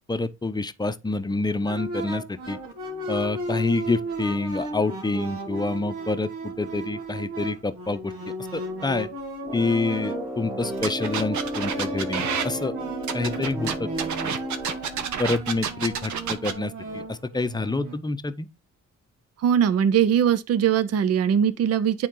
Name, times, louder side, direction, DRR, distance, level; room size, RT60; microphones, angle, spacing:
voice 1, 0.1-2.6 3.1-8.1 8.5-9.1 9.5-12.7 13.1-13.9 14.2-14.3 15.2-18.5, left 3 dB, 15° left, 0.7 m, -27 dB
sound 1, 1.7-18.0, right 1 dB, 90° right, 2.0 m, -35 dB
Brass instrument, 9.4-15.0, right 1 dB, 5° right, 1.0 m, -34 dB
sound 2, 10.8-12.5 13.0-16.5, right 7 dB, 70° right, 1.1 m, -29 dB
voice 2, 19.4-22.1, right 8 dB, 55° right, 0.7 m, -21 dB
9.1 x 4.0 x 3.8 m
cardioid pair, 90°, 30 cm